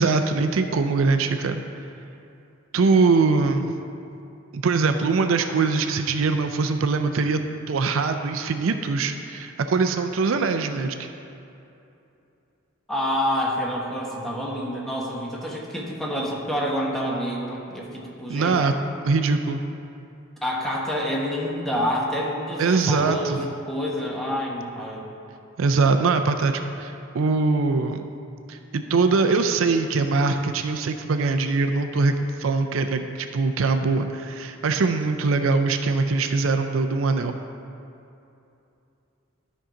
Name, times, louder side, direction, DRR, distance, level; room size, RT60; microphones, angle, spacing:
voice 1, 0.0-1.6 2.7-3.7 4.5-7.4 7.7-11.1 18.3-18.8 19.0-19.6 22.6-23.5 25.6-28.1 28.5-32.1 32.4-37.4, right 4 dB, 70° right, 7 dB, 0.4 m, -22 dB
voice 2, 12.9-18.6 20.4-23.4 23.7-25.1, equal, ahead, -3 dB, 1.2 m, -28 dB
12.5 x 5.5 x 3.8 m, 2.8 s
head